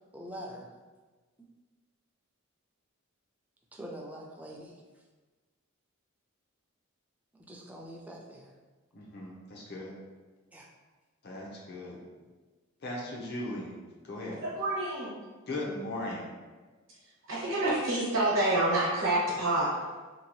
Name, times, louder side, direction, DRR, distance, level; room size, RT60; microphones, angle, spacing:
voice 1, 0.1-0.7 3.7-4.8 7.3-8.5 10.5-10.7, equal, 5° right, -1 dB, 0.3 m, -44 dB
voice 2, 8.9-10.0 11.2-12.0 12.8-13.8 14.0-14.4 15.5-16.3, left 1 dB, 55° left, -3 dB, 0.6 m, -38 dB
voice 3, 14.4-15.2 17.3-19.7, right 2 dB, 90° right, -6 dB, 0.8 m, -27 dB
2.7 x 2.2 x 3.0 m, 1.3 s
head